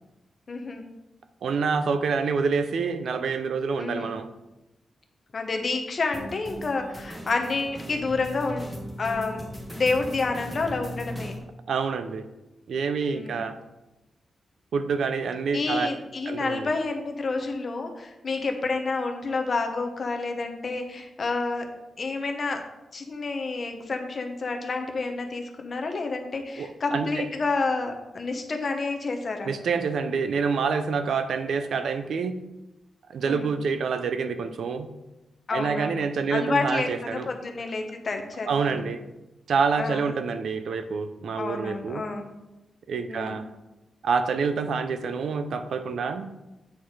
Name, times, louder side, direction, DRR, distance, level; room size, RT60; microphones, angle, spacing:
voice 1, 0.5-0.8 3.8-4.2 5.3-8.7 9.0-11.3 13.1-13.4 15.5-21.7 22.0-22.7 22.9-29.5 33.2-33.5 35.5-36.0 36.3-38.9 39.8-40.1 41.4-42.3 43.1-43.4, left 3 dB, 40° left, 4 dB, 0.9 m, -29 dB
voice 2, 1.4-4.3 11.7-12.3 12.7-13.6 14.7-16.0 16.3-16.7 26.6-27.3 29.4-32.3 33.1-34.9 35.5-37.3 38.5-39.0 39.5-42.0 42.9-43.5 44.0-46.3, right 5 dB, 75° right, 10 dB, 0.5 m, -27 dB
sound 1, 6.1-11.4, equal, 10° right, 1.5 m, -38 dB
8.5 x 4.1 x 4.7 m, 0.98 s
wide cardioid pair, 140°, 0 cm